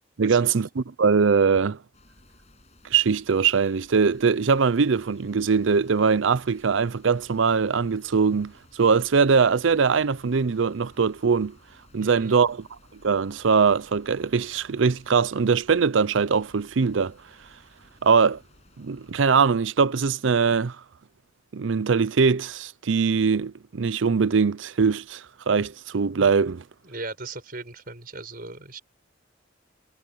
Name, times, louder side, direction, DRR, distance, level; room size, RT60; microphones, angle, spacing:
voice 1, 0.2-1.8 2.9-11.6 11.9-12.7 13.0-17.1 18.0-18.4 18.8-20.8 21.5-26.6, right 5 dB, 75° right, 0.6 m, -22 dB
sound 1, 1.9-19.4, left 1 dB, 35° left, 6.4 m, -57 dB
voice 2, 12.0-12.4 26.8-28.8, right 3 dB, 45° right, 5.9 m, -38 dB
head